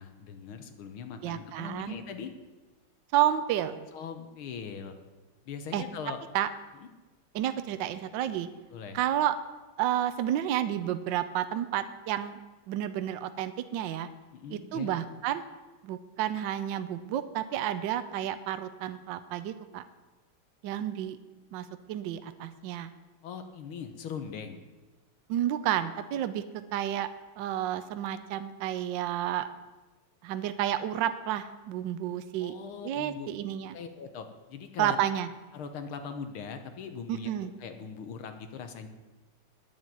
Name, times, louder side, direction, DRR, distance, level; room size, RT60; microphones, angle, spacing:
voice 1, 0.0-2.3 3.9-5.0 5.5-6.2 6.7-6.9 8.7-9.0 14.3-14.9 23.2-24.6 32.4-33.3 33.7-35.0 35.5-38.9, left 6 dB, 75° left, 7 dB, 1.9 m, -40 dB
voice 2, 1.2-1.9 3.1-3.8 5.7-5.8 6.3-6.5 7.3-8.5 8.9-9.4 9.8-12.4 12.7-14.1 14.5-15.4 15.8-19.8 20.6-21.2 21.5-22.9 25.3-26.4 26.7-27.1 27.4-29.5 30.2-32.5 32.8-33.7 34.8-35.3 37.1-37.5, right 11 dB, 70° right, 11 dB, 1.2 m, -30 dB
9.6 x 7.2 x 9.0 m, 1.2 s
omnidirectional pair, 2.4 m